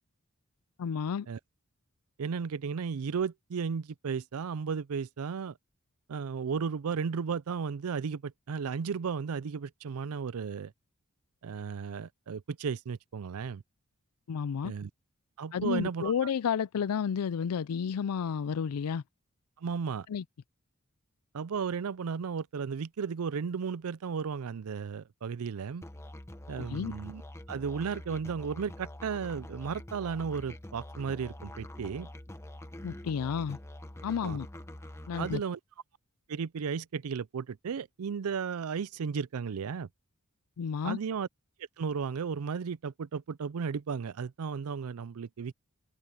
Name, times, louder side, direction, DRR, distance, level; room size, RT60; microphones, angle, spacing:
voice 1, 0.8-1.3 14.3-14.7 15.5-19.0 20.1-20.2 26.6-26.9 32.8-33.6 34.0-34.5 35.1-35.4 40.6-41.0, left 7 dB, 80° left, 0.4 m, -31 dB
voice 2, 2.2-5.6 6.1-10.7 11.4-13.6 14.6-14.9 15.4-16.3 19.6-20.1 21.3-25.8 26.5-27.2 27.5-32.1 34.2-34.4 35.2-35.6 36.3-39.9 40.8-41.3 41.8-45.5, right 6 dB, 70° right, 0.4 m, -34 dB
Musical instrument, 25.8-35.4, left 1 dB, 10° left, 1.0 m, -45 dB
open air
head